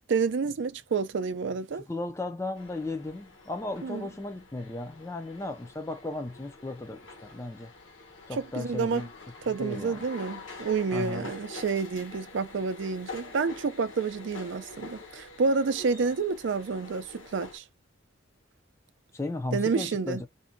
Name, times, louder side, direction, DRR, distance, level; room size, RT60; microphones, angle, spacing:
voice 1, 0.1-1.8 3.8-4.1 8.3-9.1 9.5-17.6 19.5-20.2, right 5 dB, 65° right, 0.4 m, -29 dB
voice 2, 1.9-7.7 8.3-9.1 9.6-10.0 10.9-11.3 19.1-20.3, left 2 dB, 15° left, 0.3 m, -35 dB
sound 1, 2.6-17.6, left 3 dB, 80° left, 1.1 m, -46 dB
2.6 x 2.2 x 2.4 m
head